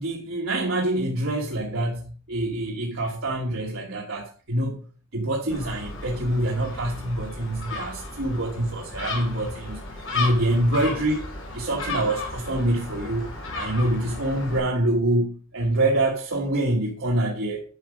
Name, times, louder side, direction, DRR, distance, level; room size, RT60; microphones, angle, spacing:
voice 1, 0.0-4.8 5.1-9.8 10.1-11.2 11.5-17.6, right 1 dB, 75° right, 1.5 m, -25 dB
Gull seagull, 5.5-14.6, left 3 dB, 75° left, 4.0 m, -34 dB
10.5 x 6.1 x 5.1 m
head